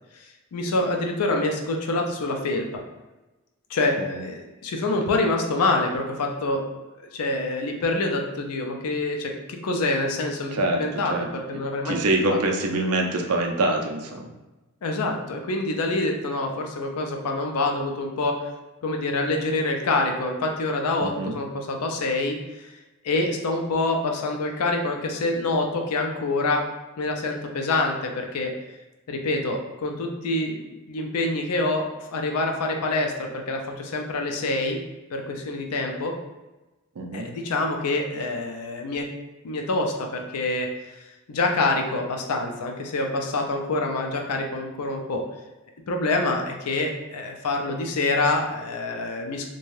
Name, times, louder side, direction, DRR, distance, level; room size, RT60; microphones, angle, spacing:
voice 1, 0.5-2.8 3.7-6.6 7.1-9.3 9.6-11.1 11.5-12.0 12.3-12.4 14.8-18.5 18.8-22.7 23.0-26.6 27.0-28.5 29.1-30.6 30.9-34.8 35.1-36.1 37.1-39.1 39.4-40.7 41.0-45.2 45.9-49.5, left 2 dB, 85° left, 3 dB, 0.5 m, -26 dB
voice 2, 10.5-11.3 11.8-14.3 21.0-21.3 37.0-37.3, right 2 dB, 75° right, 2 dB, 0.5 m, -25 dB
2.6 x 2.2 x 3.1 m, 1.1 s
head